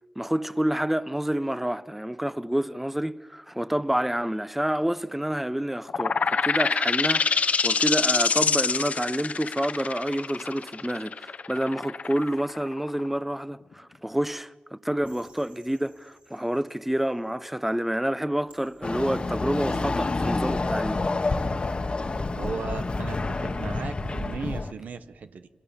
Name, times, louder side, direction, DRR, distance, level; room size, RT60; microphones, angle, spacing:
voice 1, 0.2-21.0, right 1 dB, 5° right, 0.8 m, -28 dB
sound 1, 5.9-13.2, left 5 dB, 60° left, 1.0 m, -26 dB
sound 2, 15.0-17.4 18.2-24.4, right 3 dB, 60° right, 5.2 m, -48 dB
Chatter / Car passing by / Motorcycle, 18.8-24.7, left 3 dB, 40° left, 1.4 m, -28 dB
voice 2, 22.3-25.5, right 5 dB, 85° right, 1.2 m, -36 dB
29.0 x 25.5 x 7.1 m
wide cardioid pair, 80°, 3 cm